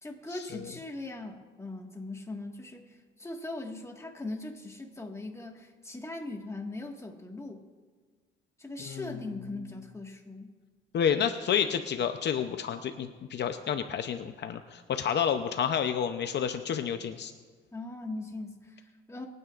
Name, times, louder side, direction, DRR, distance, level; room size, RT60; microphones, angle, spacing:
voice 1, 0.0-7.6 8.6-10.5 17.7-19.3, left 2 dB, 15° left, 2 dB, 1.7 m, -40 dB
voice 2, 8.8-9.2 10.9-17.3, left 8 dB, 60° left, 8 dB, 0.7 m, -30 dB
24.5 x 9.5 x 2.5 m, 1.5 s
cardioid pair, 90°, 20 cm